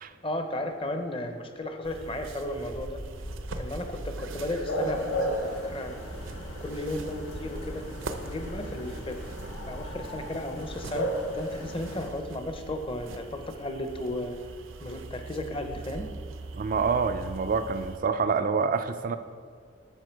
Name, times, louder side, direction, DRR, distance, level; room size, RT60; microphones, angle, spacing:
voice 1, 0.2-3.0 3.6-6.0 6.6-7.8 8.2-9.2 9.7-14.4 14.8-16.0, left 1 dB, 25° left, 6 dB, 0.7 m, -34 dB
sound 1, 1.8-18.0, right 2 dB, 75° right, 0.7 m, -42 dB
sound 2, 2.7-10.9, equal, 55° left, 2.5 m, -44 dB
sound 3, 4.7-12.1, equal, 75° left, 1.7 m, -35 dB
voice 2, 16.6-19.2, right 5 dB, 45° right, 9 dB, 0.4 m, -27 dB
11.0 x 6.7 x 4.5 m, 2.2 s
head